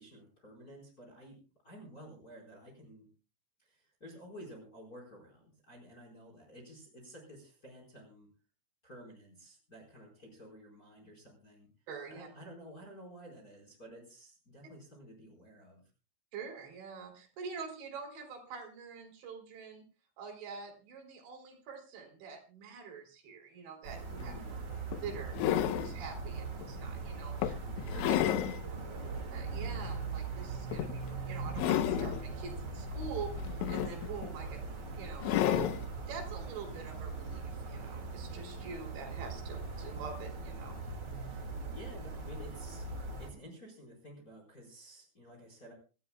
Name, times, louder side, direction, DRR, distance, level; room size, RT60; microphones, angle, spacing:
voice 1, 0.0-1.4 1.6-3.1 3.6-8.3 8.8-11.7 12.1-15.8 24.2-24.5 27.9-28.4 41.2-42.9 43.2-45.7, equal, 20° left, 1 dB, 4.6 m, -52 dB
voice 2, 11.9-12.3 16.3-19.8 20.2-24.3 25.0-27.5 29.3-34.6 35.0-40.8 43.3-43.4, right 5 dB, 70° right, 2 dB, 5.3 m, -45 dB
sound 1, 23.8-43.3, right 3 dB, 45° right, 1.3 m, -40 dB
sound 2, 24.2-24.3 24.9-26.0 26.6-26.8 27.4-28.6 29.1-29.2 30.7-31.1 31.5-32.2 33.4-34.3 35.2-35.9 37.2-37.3, left 12 dB, 80° left, 3.2 m, -31 dB
26.5 x 14.5 x 2.3 m, 0.33 s
omnidirectional pair, 5.4 m